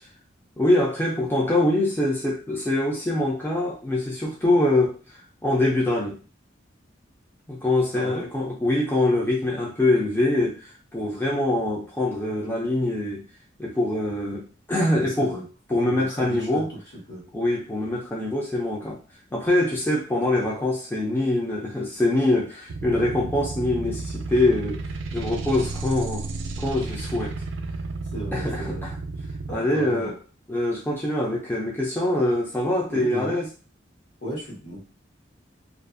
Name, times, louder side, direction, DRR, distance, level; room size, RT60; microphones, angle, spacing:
voice 1, 0.6-6.2 7.5-13.2 13.6-15.4 15.7-16.7 17.3-19.0 19.3-24.8 25.1-26.3 26.6-27.3 28.3-28.9 29.5-30.2 30.5-33.5, left 1 dB, 10° left, -4 dB, 0.4 m, -24 dB
voice 2, 7.9-8.2 14.9-15.4 15.8-16.8 17.1-17.2 28.1-28.9 29.5-30.1 32.9-33.4 34.2-34.8, right 1 dB, 65° left, -3 dB, 1.2 m, -35 dB
sound 1, 22.7-29.5, right 3 dB, 85° right, 0.4 m, -32 dB
2.5 x 2.3 x 2.5 m, 0.35 s
head